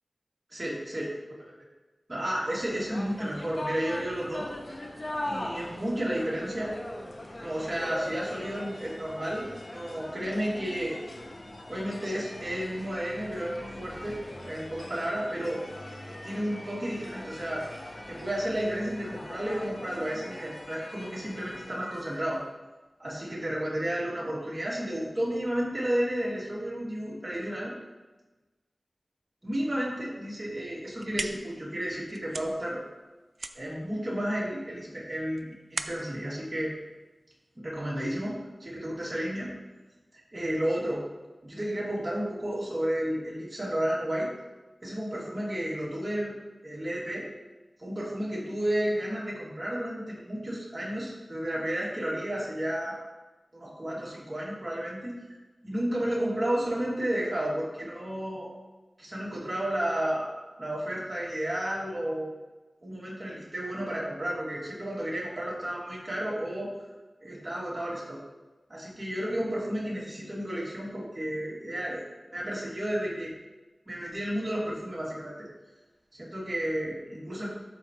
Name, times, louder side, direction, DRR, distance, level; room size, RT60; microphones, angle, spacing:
voice 1, 0.5-1.1 2.1-4.5 5.3-6.8 7.4-11.0 11.7-14.2 14.4-15.6 16.2-17.7 18.1-22.4 23.0-27.7 29.4-32.8 33.5-36.7 37.6-39.5 40.3-41.0 41.4-44.3 44.8-46.3 46.6-47.3 47.8-53.0 53.5-55.1 55.6-58.5 59.0-60.3 60.6-62.3 62.8-66.7 67.2-68.2 68.7-72.0 72.3-73.3 73.9-75.5 76.2-77.5, equal, 35° right, -6 dB, 2.7 m, -32 dB
sound 1, 2.6-22.4, left 1 dB, 45° left, 1.1 m, -41 dB
sound 2, 30.7-37.6, right 3 dB, 75° right, 0.4 m, -41 dB
13.0 x 4.4 x 3.2 m, 1.2 s
wide cardioid pair, 75°, 0 cm